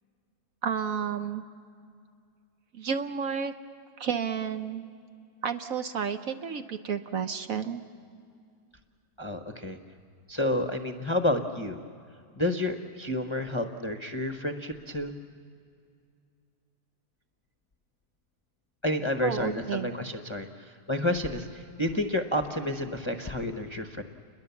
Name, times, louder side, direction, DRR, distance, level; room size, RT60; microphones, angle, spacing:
voice 1, 0.6-1.4 2.7-3.5 4.0-4.8 5.4-7.8 19.2-19.9, right 7 dB, 60° right, 8 dB, 1.1 m, -31 dB
voice 2, 9.2-9.8 10.3-11.8 12.4-15.1 18.8-24.0, left 1 dB, 20° left, 5 dB, 0.8 m, -30 dB
29.5 x 21.5 x 7.0 m, 2.3 s
omnidirectional pair, 1.8 m